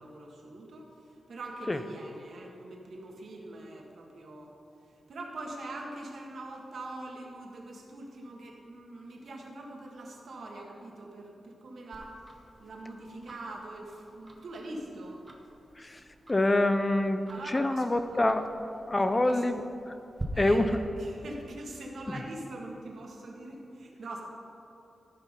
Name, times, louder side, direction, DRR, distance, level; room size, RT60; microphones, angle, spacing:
voice 1, 0.0-4.5 4.9-15.3 17.3-18.3 18.9-19.4 20.3-24.2, right 2 dB, 70° right, -1 dB, 1.8 m, -43 dB
Tick-tock, 11.9-20.2, right 2 dB, 20° right, 1.1 m, -49 dB
voice 2, 16.3-19.6 19.9-20.0 20.4-20.8, left 1 dB, 20° left, 9 dB, 0.5 m, -26 dB
14.5 x 6.1 x 5.3 m, 2.8 s
wide cardioid pair, 125°, 0 cm